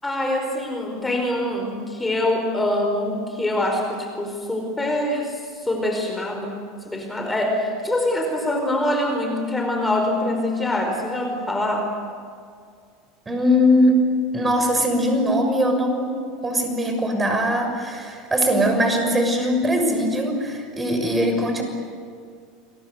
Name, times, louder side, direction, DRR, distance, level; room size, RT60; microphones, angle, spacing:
voice 1, 0.0-6.6 6.8-11.9, left 1 dB, 10° left, 3 dB, 4.8 m, -24 dB
voice 2, 13.3-14.0 14.3-16.2 16.4-21.6, equal, 15° right, 5 dB, 6.4 m, -21 dB
29.5 x 23.0 x 8.2 m, 2.2 s
hypercardioid pair, 80°, 0 cm